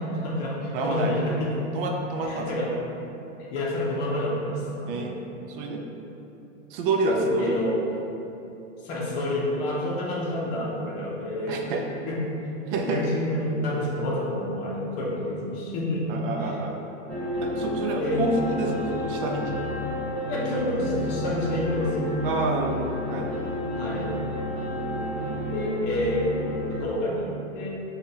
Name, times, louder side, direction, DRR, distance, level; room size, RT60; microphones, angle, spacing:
voice 1, 0.0-1.5 2.2-2.7 3.4-5.1 7.0-7.8 8.8-11.6 12.1-12.2 12.9-16.1 16.3-16.5 18.0-18.2 20.3-22.1 23.8-24.1 25.5-26.3 26.8-27.7, left 1 dB, 40° left, -4 dB, 0.7 m, -28 dB
voice 2, 0.7-1.1 1.7-2.5 4.9-5.1 5.5-5.8 6.7-7.6 11.5-11.8 12.7-13.0 16.1-16.8 17.4-19.6 22.2-23.6 25.3-25.6, right 3 dB, 45° right, 1 dB, 0.5 m, -28 dB
sound 1, 17.1-26.8, left 1 dB, 5° left, 0.5 m, -30 dB
4.9 x 2.4 x 2.8 m, 2.9 s
hypercardioid pair, 130°, 38 cm